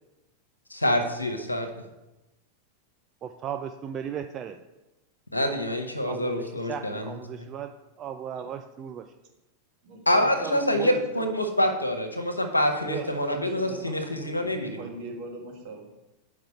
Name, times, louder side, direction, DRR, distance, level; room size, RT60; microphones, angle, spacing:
voice 1, 0.7-1.7 5.3-7.1 10.1-14.8, left 1 dB, 80° left, 5 dB, 0.8 m, -26 dB
voice 2, 3.2-4.6 6.0-9.1, right 8 dB, 30° right, 6 dB, 0.3 m, -36 dB
voice 3, 9.8-11.3 12.8-13.1 13.3-15.9, right 3 dB, 45° right, 0 dB, 1.4 m, -38 dB
6.4 x 4.7 x 4.2 m, 1.0 s
figure-of-eight pair, 90°, 0 cm